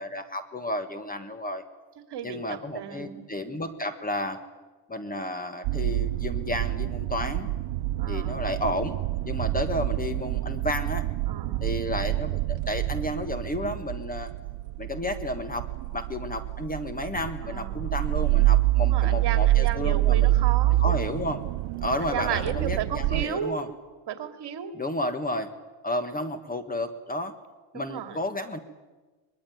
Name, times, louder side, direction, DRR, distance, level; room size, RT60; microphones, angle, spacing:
voice 1, 0.0-1.6 2.2-4.4 4.9-7.5 8.1-9.0 9.2-11.0 11.6-14.3 14.8-15.7 15.9-20.3 20.8-21.4 21.8-23.7 24.7-25.5 25.8-27.3 27.7-28.6, left 1 dB, 15° left, 9 dB, 1.6 m, -32 dB
voice 2, 2.1-3.2 8.0-8.4 11.3-11.7 17.4-17.9 18.8-20.8 22.0-23.6 24.1-24.8 27.7-28.2, right 9 dB, 50° right, 7 dB, 2.8 m, -34 dB
sound 1, 5.6-23.2, right 17 dB, 85° right, 0.8 m, -27 dB
23.5 x 21.5 x 9.4 m, 1.2 s
cardioid pair, 130°, 50 cm